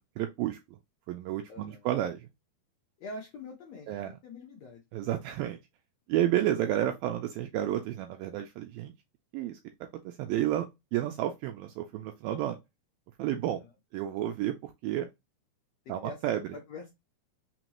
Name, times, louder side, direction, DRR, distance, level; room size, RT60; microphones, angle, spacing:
voice 1, 0.2-0.8 1.1-2.3 3.9-4.1 4.9-5.6 6.1-8.9 9.3-9.6 10.1-12.6 13.2-13.6 13.9-15.1 15.9-16.5, right 12 dB, 85° right, 2.1 m, -31 dB
voice 2, 1.5-1.8 3.0-4.8 13.4-13.7 15.8-16.2 16.5-16.9, left 3 dB, 85° left, 1.4 m, -45 dB
6.0 x 2.4 x 2.9 m
omnidirectional pair, 4.5 m